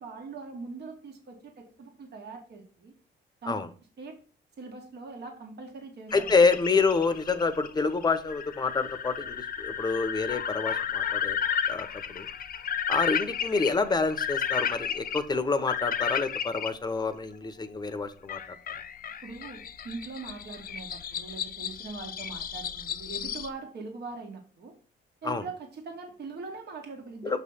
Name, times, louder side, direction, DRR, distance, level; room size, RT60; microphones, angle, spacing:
voice 1, 0.0-2.9 3.4-3.6 4.0-4.2 4.6-6.5 19.2-24.7 25.2-27.4, right 4 dB, 55° right, 2 dB, 1.6 m, -42 dB
sound 1, 6.1-16.7 18.3-23.5, left 8 dB, 45° left, 0.5 m, -33 dB
voice 2, 6.1-11.4 11.7-12.3 12.9-18.4 25.2-25.4 27.2-27.4, left 4 dB, 20° left, 9 dB, 0.8 m, -27 dB
6.5 x 3.2 x 5.5 m, 0.39 s
cardioid pair, 90°, 20 cm